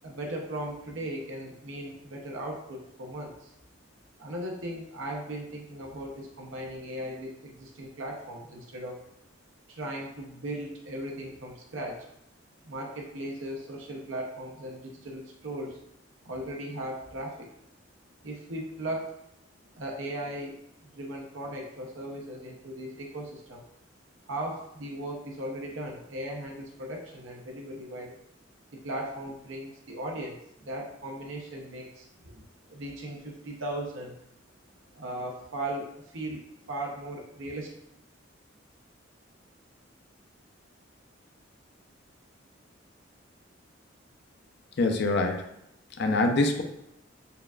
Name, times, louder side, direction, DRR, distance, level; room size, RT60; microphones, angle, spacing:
voice 1, 0.0-3.5 4.2-9.0 9.7-12.1 12.6-15.8 16.2-17.5 18.2-19.2 19.8-20.6 20.8-23.6 24.2-28.2 28.7-32.4 32.7-34.2 34.9-36.4 36.7-37.7, right 1 dB, 85° right, 0 dB, 0.7 m, -37 dB
voice 2, 44.8-45.4 46.0-46.6, left 2 dB, 60° left, 4 dB, 0.5 m, -24 dB
6.7 x 2.4 x 2.3 m, 0.79 s
head